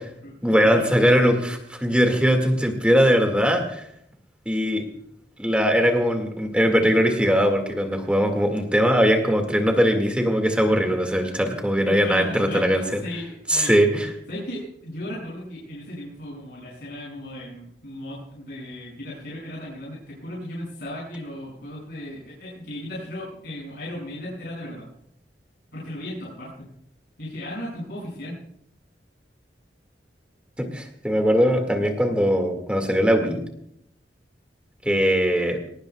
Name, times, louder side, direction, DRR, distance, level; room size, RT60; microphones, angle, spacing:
voice 1, 0.4-3.9 4.5-4.8 5.4-13.0 13.5-14.1 30.6-33.4 34.8-35.6, equal, 5° right, 3 dB, 2.1 m, -20 dB
voice 2, 11.8-13.7 14.3-24.9 25.7-26.7 27.2-28.4, left 1 dB, 65° left, -6 dB, 6.7 m, -36 dB
22.0 x 19.0 x 2.4 m, 0.72 s
head